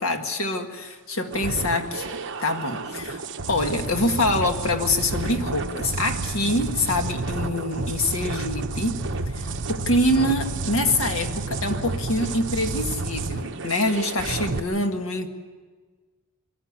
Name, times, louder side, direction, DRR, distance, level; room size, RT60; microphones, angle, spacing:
voice 1, 0.0-3.2 3.5-9.0 9.3-15.3, left 1 dB, 65° left, 5 dB, 1.9 m, -25 dB
sound 1, 1.3-14.6, right 3 dB, 60° right, 1.1 m, -30 dB
23.0 x 14.5 x 9.7 m, 1.4 s
head